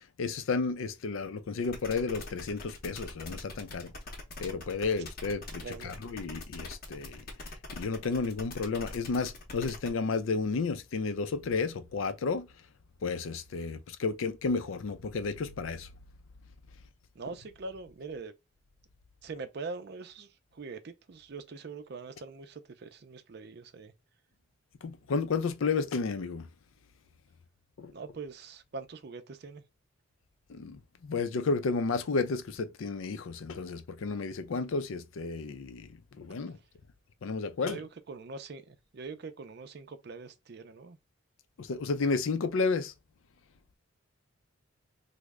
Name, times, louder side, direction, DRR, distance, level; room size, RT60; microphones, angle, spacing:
voice 1, 0.2-3.9 4.4-7.2 7.7-12.5 13.0-15.9 24.8-26.5 27.8-27.9 30.5-35.9 36.2-36.6 37.2-37.8 41.6-42.9, left 4 dB, 80° left, 0.4 m, -32 dB
sound 1, 1.6-9.9, left 2 dB, 45° left, 0.8 m, -43 dB
voice 2, 5.6-5.9 17.2-18.3 19.2-23.9 27.9-29.6 37.6-41.0, right 4 dB, 50° right, 0.5 m, -43 dB
3.1 x 2.1 x 3.5 m
head